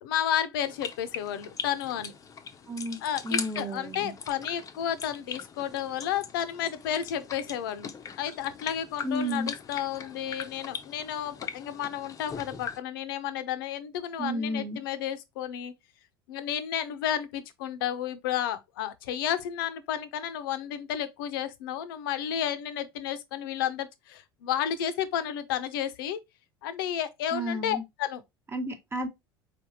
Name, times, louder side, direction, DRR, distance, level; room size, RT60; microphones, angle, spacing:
voice 1, 0.0-2.1 3.0-7.9 8.2-15.7 16.3-26.2 26.6-28.2, left 10 dB, 60° left, 0.7 m, -32 dB
sound 1, 0.6-12.8, left 6 dB, 25° left, 0.7 m, -40 dB
voice 2, 2.7-3.0 3.2-4.1 9.0-9.5 14.2-14.8 27.3-27.8 28.5-29.1, equal, 20° right, 1.0 m, -32 dB
4.7 x 3.4 x 2.8 m
figure-of-eight pair, 70°, 13 cm